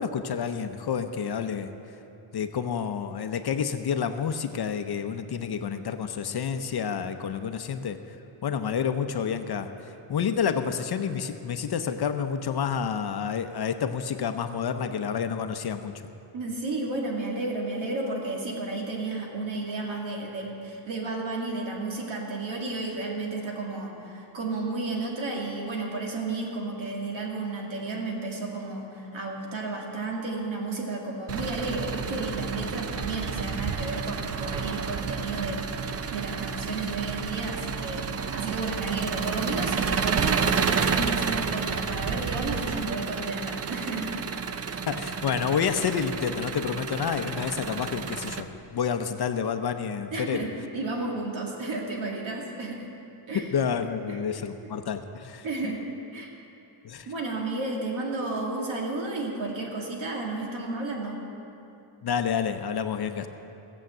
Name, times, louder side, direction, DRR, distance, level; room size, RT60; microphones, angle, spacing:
voice 1, 0.0-1.7 2.3-8.2 8.4-16.0 44.9-50.5 53.3-55.7 56.8-57.1 62.0-63.3, left 7 dB, 50° left, 8 dB, 0.7 m, -29 dB
voice 2, 16.3-35.7 36.1-44.2 50.1-52.9 53.3-53.5 54.1-54.2 54.6-54.7 55.4-55.9 56.1-56.3 57.1-61.3, right 2 dB, 65° right, -1 dB, 2.4 m, -32 dB
Engine, 31.3-48.4, right 6 dB, 30° right, 0.4 m, -30 dB
17.0 x 7.3 x 7.8 m, 2.8 s
wide cardioid pair, 165°, 50 cm